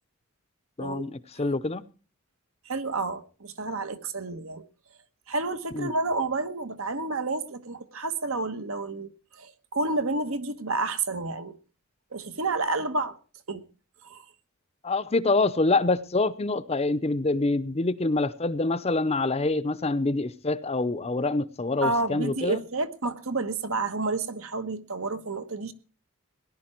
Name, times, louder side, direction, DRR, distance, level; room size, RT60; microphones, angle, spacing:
voice 1, 0.8-1.8 5.7-5.9 14.8-22.6, left 2 dB, 30° left, 0.6 m, -26 dB
voice 2, 2.6-4.7 5.3-9.1 9.4-11.6 12.1-13.2 13.5-13.6 14.0-14.2 21.8-25.7, right 3 dB, 75° right, 1.3 m, -30 dB
18.0 x 11.0 x 4.4 m
head